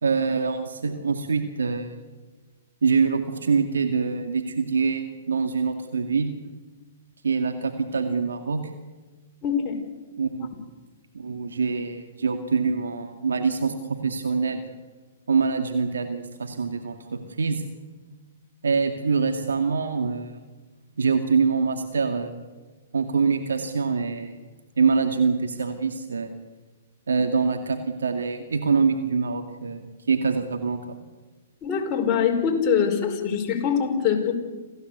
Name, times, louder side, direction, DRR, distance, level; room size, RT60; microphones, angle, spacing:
voice 1, 0.0-1.9 2.8-6.3 7.2-8.6 10.2-10.6 11.1-14.6 15.3-17.6 18.6-20.3 21.0-22.3 22.9-24.3 24.8-26.3 27.1-29.8 30.1-31.0, right 5 dB, 90° right, 6 dB, 2.3 m, -24 dB
voice 2, 9.4-9.8 31.6-34.3, left 7 dB, 30° left, 1 dB, 5.0 m, -23 dB
27.0 x 16.5 x 8.2 m, 1.3 s
hypercardioid pair, 130°, 0 cm